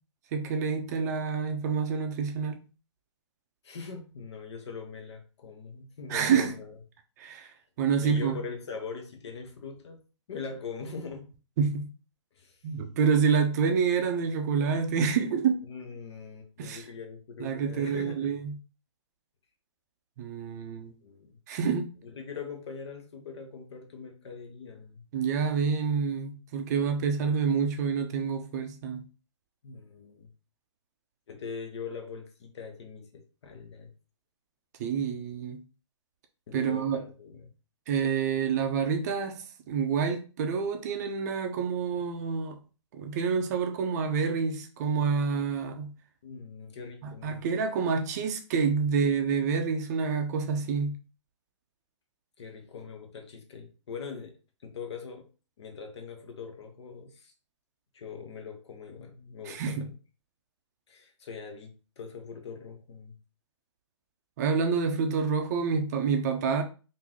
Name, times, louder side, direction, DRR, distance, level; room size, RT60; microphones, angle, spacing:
voice 1, 0.3-2.6 6.1-6.5 7.2-7.5 7.8-8.4 11.6-11.9 12.6-15.6 16.6-16.8 17.4-18.5 20.2-20.9 21.5-21.9 25.1-29.0 34.8-35.6 36.5-37.0 37.9-42.6 42.9-45.9 47.2-50.9 59.5-59.9 64.4-66.6, right 6 dB, 35° right, 0.5 m, -28 dB
voice 2, 3.6-6.8 8.0-10.0 10.3-11.2 12.3-12.6 15.6-18.2 21.0-21.4 22.0-25.1 29.6-30.3 31.3-33.9 36.5-37.5 46.2-47.5 52.4-54.3 54.6-55.3 55.6-57.3 57.9-59.9 60.9-63.2, left 5 dB, 60° left, 1.0 m, -42 dB
3.5 x 2.6 x 2.9 m
hypercardioid pair, 145°, 16 cm